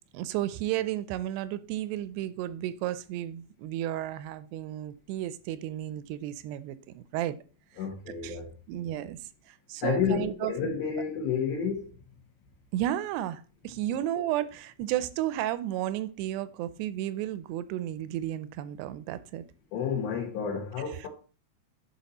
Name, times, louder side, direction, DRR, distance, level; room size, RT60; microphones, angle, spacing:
voice 1, 0.1-7.4 8.2-8.4 8.7-9.2 9.5-10.7 12.7-19.4 21.0-21.1, right 13 dB, 85° right, 2.6 m, -33 dB
voice 2, 7.8-8.5 9.8-11.9 19.7-21.1, left 7 dB, 85° left, 3.5 m, -30 dB
11.0 x 4.2 x 4.1 m
omnidirectional pair, 4.8 m